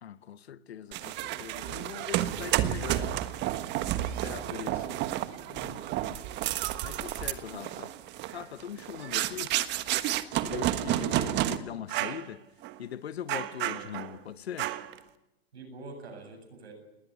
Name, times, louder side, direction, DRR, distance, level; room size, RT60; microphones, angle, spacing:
voice 1, 0.0-3.3 3.9-4.8 5.5-6.2 6.8-7.9 8.3-9.6 10.4-12.4 12.8-14.7, left 9 dB, 85° left, 1.1 m, -41 dB
sound 1, 0.9-11.6 11.9-12.2 12.6-12.8 13.3-14.2 14.6-15.0, right 14 dB, 35° right, 1.4 m, -31 dB
voice 2, 4.2-4.9 15.5-16.7, right 3 dB, 85° right, 7.9 m, -45 dB
20.0 x 18.5 x 10.0 m
hypercardioid pair, 120°, 31 cm